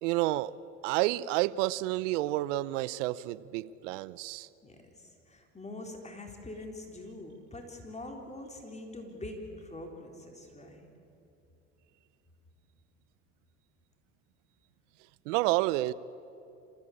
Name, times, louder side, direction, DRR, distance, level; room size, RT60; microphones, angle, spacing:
voice 1, 0.0-0.5 0.8-4.5 15.3-15.9, right 17 dB, 80° right, 19 dB, 0.7 m, -29 dB
voice 2, 4.6-10.9, left 2 dB, 20° left, 2 dB, 3.9 m, -44 dB
27.5 x 15.5 x 8.7 m, 2.8 s
supercardioid pair, 80°, 36 cm